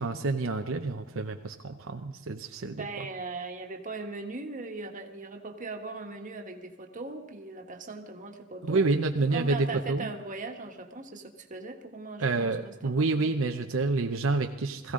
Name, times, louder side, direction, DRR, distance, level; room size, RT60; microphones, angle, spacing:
voice 1, 0.0-2.8 8.6-10.1 12.2-14.9, right 3 dB, 75° right, 5 dB, 0.8 m, -28 dB
voice 2, 2.7-8.9 9.3-13.3, right 3 dB, 40° right, 4 dB, 1.5 m, -39 dB
21.0 x 15.0 x 3.8 m, 1.1 s
head